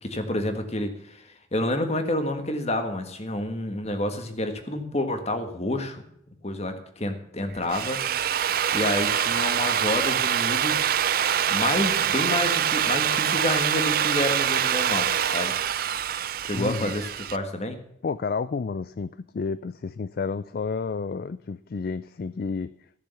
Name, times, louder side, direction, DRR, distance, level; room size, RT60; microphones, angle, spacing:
voice 1, 0.0-6.0 6.4-8.0 8.3-10.9 11.5-15.5 16.4-17.8, left 1 dB, 35° left, 7 dB, 1.6 m, -29 dB
Drill, 7.5-17.4, right 9 dB, 50° right, 0.5 m, -25 dB
voice 2, 16.5-16.9 18.0-22.7, left 5 dB, 50° left, 15 dB, 0.4 m, -30 dB
14.5 x 6.8 x 7.0 m, 0.74 s
head